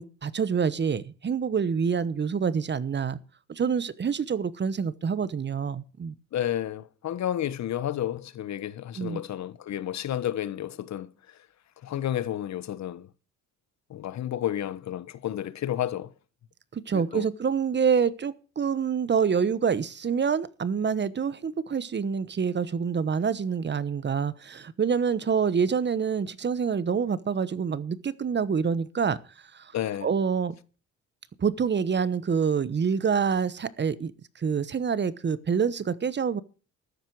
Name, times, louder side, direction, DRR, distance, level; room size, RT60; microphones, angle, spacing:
voice 1, 0.0-3.2 3.5-6.1 9.0-9.2 16.7-29.2 29.5-29.7 30.0-30.5 31.4-34.1 34.4-36.4, right 6 dB, 35° right, 1.0 m, -26 dB
voice 2, 6.3-11.1 11.8-13.1 13.9-16.1 16.9-17.3 29.7-30.1, left 11 dB, 65° left, 1.1 m, -31 dB
13.0 x 10.0 x 4.7 m
cardioid pair, 90°, 30 cm